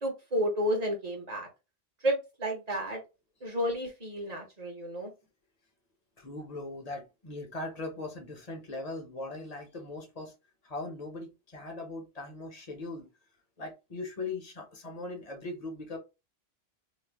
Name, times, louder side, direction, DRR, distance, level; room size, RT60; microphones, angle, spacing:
voice 1, 0.0-1.5 2.0-3.0 3.4-5.1, equal, 40° right, 1.2 m, -31 dB
voice 2, 6.2-10.3 10.6-13.1 13.6-16.0, left 2 dB, 40° left, 1.0 m, -40 dB
3.0 x 2.3 x 3.4 m
omnidirectional pair, 1.1 m